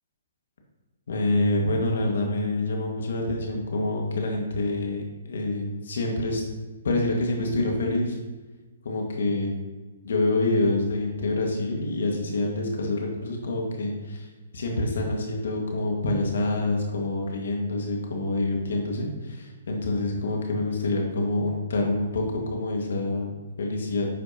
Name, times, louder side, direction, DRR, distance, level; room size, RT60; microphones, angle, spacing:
voice 1, 1.1-6.4 6.8-8.2 8.8-9.5 10.0-14.3 14.5-24.1, left 2 dB, 70° left, 1 dB, 1.7 m, -27 dB
9.1 x 5.1 x 2.9 m, 1.3 s
hypercardioid pair, 135°, 0 cm